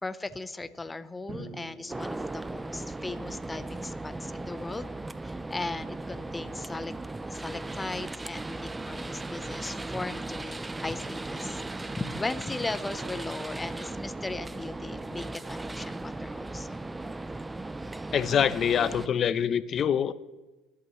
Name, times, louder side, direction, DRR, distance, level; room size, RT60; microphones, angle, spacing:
voice 1, 0.0-4.9 5.2-6.9 7.3-16.8, left 3 dB, 15° left, 12 dB, 0.8 m, -37 dB
Drum, 1.3-3.2, right 3 dB, 50° right, 4.5 m, -46 dB
sound 1, 1.9-19.1, right 2 dB, 15° right, 0.5 m, -37 dB
voice 2, 18.1-20.1, left 8 dB, 45° left, 15 dB, 0.7 m, -25 dB
25.0 x 8.5 x 3.1 m, 1.1 s
supercardioid pair, 80°, 0 cm